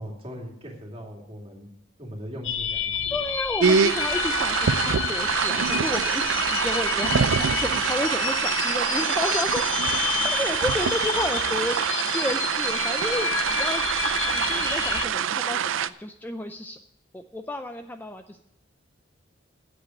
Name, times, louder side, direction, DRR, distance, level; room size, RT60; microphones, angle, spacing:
voice 1, 0.0-1.7 2.0-3.2, equal, 30° right, 0 dB, 2.5 m, -39 dB
sound 1, 2.4-15.1, left 8 dB, 80° left, 0.9 m, -29 dB
voice 2, 3.1-9.6 9.9-11.8 12.1-16.8 17.1-18.4, left 1 dB, 10° left, 7 dB, 0.4 m, -32 dB
sound 2, 3.6-15.9, right 7 dB, 85° right, 0.5 m, -25 dB
8.6 x 8.2 x 8.8 m, 0.78 s
head